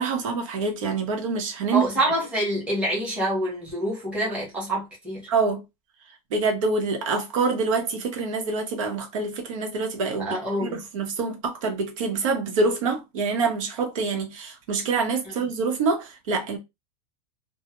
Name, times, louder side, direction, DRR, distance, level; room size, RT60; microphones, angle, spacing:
voice 1, 0.0-1.9 5.3-5.6 6.3-10.3 10.7-16.6, right 4 dB, 90° right, 0.8 m, -26 dB
voice 2, 1.7-5.2 10.2-10.8, right 1 dB, 5° right, 0.8 m, -26 dB
2.2 x 2.0 x 2.9 m
supercardioid pair, 180°, 16 cm